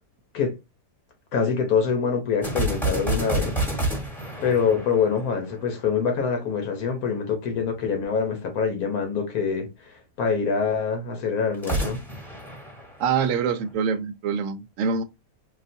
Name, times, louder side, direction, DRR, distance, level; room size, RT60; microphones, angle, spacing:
voice 1, 1.3-3.6 4.4-12.0, left 6 dB, 80° left, 1.4 m, -25 dB
sound 1, 2.4-5.9 11.5-13.6, right 1 dB, ahead, 1.0 m, -29 dB
voice 2, 13.0-15.0, right 6 dB, 70° right, 0.9 m, -25 dB
3.6 x 2.4 x 2.6 m
omnidirectional pair, 1.6 m